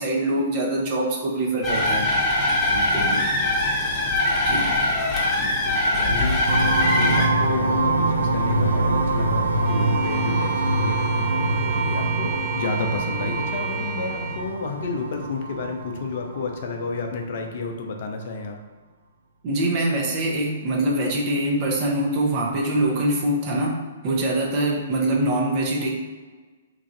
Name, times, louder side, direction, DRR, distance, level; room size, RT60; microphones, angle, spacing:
voice 1, 0.0-2.1 2.9-3.2 4.4-4.8 19.4-23.8 24.0-25.9, right 1 dB, 40° right, -1 dB, 0.9 m, -24 dB
sound 1, 1.6-7.3, left 1 dB, 15° left, 1.0 m, -22 dB
voice 2, 2.7-3.7 5.4-6.5 6.9-18.6, left 4 dB, 55° left, 3 dB, 0.5 m, -31 dB
sound 2, 6.5-17.0, right 2 dB, 80° right, 0.5 m, -24 dB
Bowed string instrument, 9.6-14.5, right 6 dB, 20° right, 0.5 m, -33 dB
3.1 x 2.5 x 3.9 m, 1.4 s
figure-of-eight pair, 120°, 0 cm